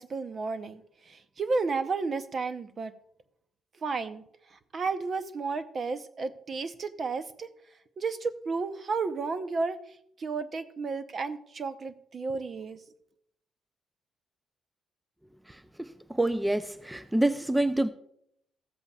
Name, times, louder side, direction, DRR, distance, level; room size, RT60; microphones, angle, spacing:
voice 1, 0.0-2.9 3.8-4.2 4.5-7.5 8.0-12.8, right 4 dB, 45° right, 0.7 m, -32 dB
voice 2, 15.5-17.9, right 1 dB, 5° right, 0.5 m, -27 dB
14.5 x 8.1 x 2.4 m
cardioid pair, 90°, 0 cm